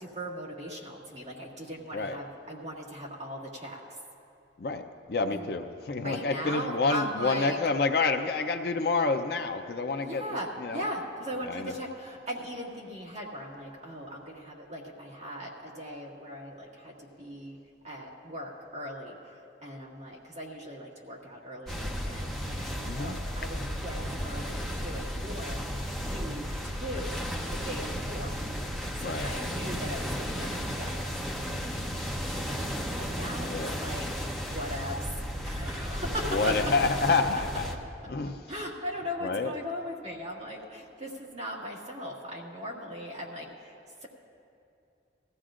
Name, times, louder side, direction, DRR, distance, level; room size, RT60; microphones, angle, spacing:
voice 1, 0.0-3.8 5.3-5.5 6.0-7.6 10.0-17.6 17.8-25.6 26.1-27.2 27.5-28.4 29.0-31.0 33.0-34.1 34.4-35.1 35.4-36.6 38.2-43.7, equal, 40° right, -4 dB, 1.9 m, -39 dB
voice 2, 5.1-10.8 11.4-11.7 22.9-23.2 29.0-29.3 33.5-33.8 36.3-37.7 38.1-38.4 39.2-39.5, left 4 dB, 55° left, 6 dB, 0.5 m, -28 dB
sound 1, 21.7-37.8, equal, ahead, 0.7 m, -34 dB
19.5 x 15.0 x 2.5 m, 2.6 s
head